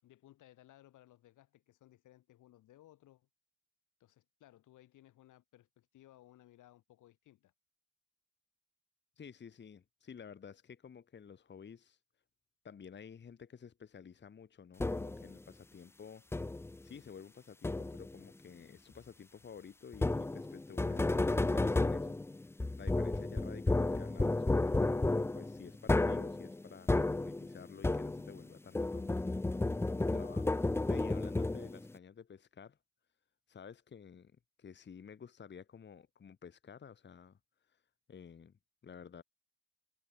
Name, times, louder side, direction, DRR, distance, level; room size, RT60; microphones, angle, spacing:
voice 1, 0.0-3.3 4.0-7.5, left 14 dB, 85° left, 4.5 m, -62 dB
voice 2, 9.2-12.0 12.6-16.3 16.8-22.2 22.4-29.2 29.5-29.6 30.0-30.6 30.9-32.8 33.5-34.3 34.6-37.4 37.7-37.8 38.1-39.2, left 7 dB, 35° left, 1.3 m, -52 dB
sound 1, 14.8-15.3 16.3-16.8 17.6-18.2 19.9-28.5 28.7-31.9, left 2 dB, 10° left, 0.5 m, -32 dB
cardioid pair, 90°, 30 cm